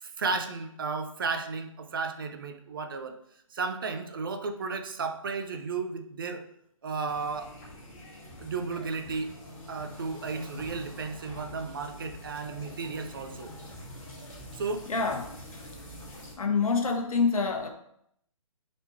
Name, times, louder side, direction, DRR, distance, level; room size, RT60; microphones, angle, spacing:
voice 1, 0.0-3.2 3.5-6.4 6.8-7.5 8.4-9.3 9.7-13.5 14.5-14.9, right 4 dB, 40° right, 7 dB, 0.7 m, -34 dB
sound 1, 7.1-16.3, left 1 dB, 20° left, 2.8 m, -45 dB
voice 2, 14.9-15.3 16.4-17.7, left 4 dB, 85° left, 4 dB, 1.4 m, -26 dB
10.0 x 4.3 x 3.2 m, 0.72 s
hypercardioid pair, 175°, 17 cm